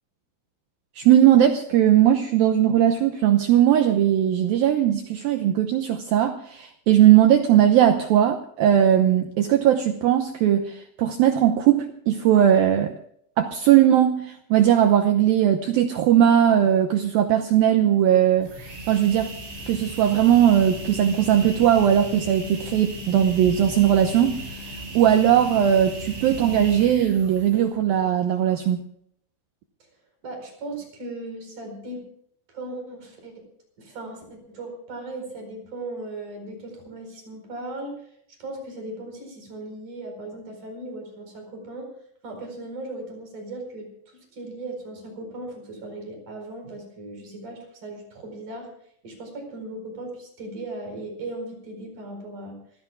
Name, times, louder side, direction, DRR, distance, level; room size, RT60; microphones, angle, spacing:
voice 1, 1.0-12.9 13.4-19.3 19.7-28.9, right 10 dB, 85° right, 6 dB, 2.1 m, -19 dB
sound 1, 18.4-27.8, equal, 60° right, 9.2 m, -36 dB
voice 2, 30.2-32.0 32.5-33.3 33.8-37.9 38.4-41.9 42.2-48.7 49.0-52.6, right 2 dB, 45° right, 4 dB, 5.7 m, -37 dB
26.5 x 16.0 x 2.3 m, 0.67 s
omnidirectional pair, 5.4 m